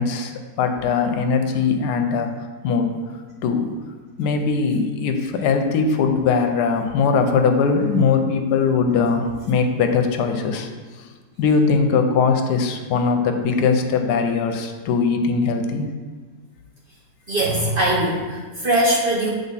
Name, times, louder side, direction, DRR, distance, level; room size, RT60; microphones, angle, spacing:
voice 1, 0.0-2.3 2.6-2.9 3.4-3.7 4.2-10.7 11.0-11.1 11.4-15.8, left 5 dB, 70° left, 5 dB, 1.1 m, -20 dB
voice 2, 17.3-19.3, right 1 dB, 50° right, -3 dB, 0.6 m, -21 dB
7.2 x 3.5 x 4.0 m, 1.4 s
omnidirectional pair, 1.9 m